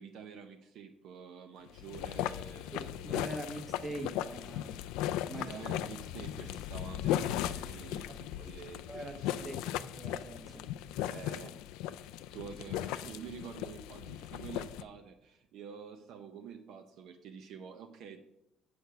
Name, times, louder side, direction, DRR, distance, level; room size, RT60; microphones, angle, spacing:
voice 1, 0.0-3.1 5.4-9.5 11.0-11.6 12.3-18.2, right 7 dB, 55° right, 6 dB, 0.7 m, -48 dB
sound 1, 1.7-14.8, left 12 dB, 90° left, 0.4 m, -37 dB
voice 2, 2.7-4.9 5.3-5.6 8.1-8.2 8.9-10.7, right 1 dB, 20° right, 5 dB, 1.2 m, -43 dB
8.0 x 6.4 x 5.7 m, 0.86 s
cardioid pair, 165°, 0 cm